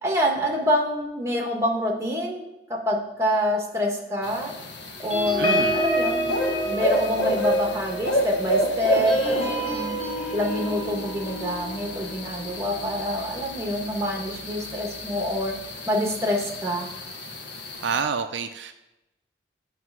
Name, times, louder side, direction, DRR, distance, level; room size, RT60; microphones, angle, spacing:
voice 1, 0.0-2.4 2.7-4.5 5.0-6.2 6.7-9.9 10.3-15.5 15.9-16.9, equal, 15° right, 0 dB, 1.3 m, -26 dB
sound 1, 4.2-18.0, equal, 65° left, 1.1 m, -30 dB
sound 2, 5.1-14.0 14.5-14.7 15.0-15.3, right 1 dB, 30° left, 2.0 m, -30 dB
voice 2, 5.4-5.8 17.8-18.7, right 6 dB, 75° right, 8 dB, 0.4 m, -28 dB
9.3 x 3.3 x 6.0 m, 0.95 s
head